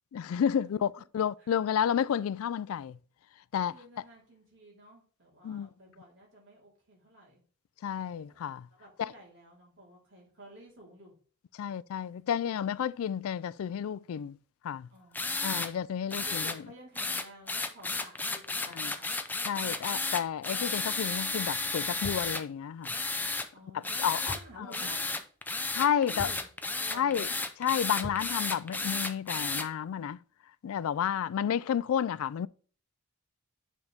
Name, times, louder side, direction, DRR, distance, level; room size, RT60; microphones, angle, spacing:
voice 1, 0.1-3.0 3.5-3.7 5.4-5.7 7.8-8.7 9.0-9.1 11.5-14.4 14.6-14.9 15.4-16.6 18.7-18.9 19.5-22.9 23.7-24.7 25.7-26.3 26.9-27.3 27.6-30.2 30.6-32.5, left 8 dB, 65° left, 0.3 m, -31 dB
voice 2, 3.7-7.4 8.3-8.5 8.8-11.1 14.9-15.6 16.2-19.1 23.5-25.2 26.0-27.4 31.0-31.5, right 1 dB, 55° right, 3.8 m, -53 dB
sound 1, 15.1-15.7 16.1-16.6 17.0-22.4 22.8-23.5 23.8-24.4 24.7-29.7, left 3 dB, 10° left, 0.5 m, -33 dB
sound 2, 22.0-22.4 24.3-24.6 24.9-25.0 26.2-26.5 28.0-28.3, left 1 dB, 15° right, 3.7 m, -41 dB
9.6 x 5.3 x 3.5 m
head